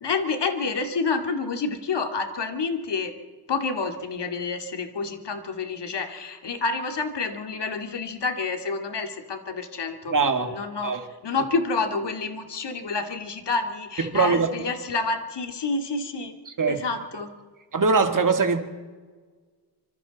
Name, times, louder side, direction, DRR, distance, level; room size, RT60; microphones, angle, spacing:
voice 1, 0.0-3.1 3.5-16.4 16.7-17.3, left 4 dB, 75° left, 5 dB, 2.3 m, -29 dB
voice 2, 10.1-10.5 10.8-11.0 14.1-14.5 16.6-16.8 17.7-18.6, right 4 dB, 50° right, 6 dB, 2.1 m, -21 dB
26.0 x 25.0 x 4.1 m, 1.4 s
wide cardioid pair, 115°, 41 cm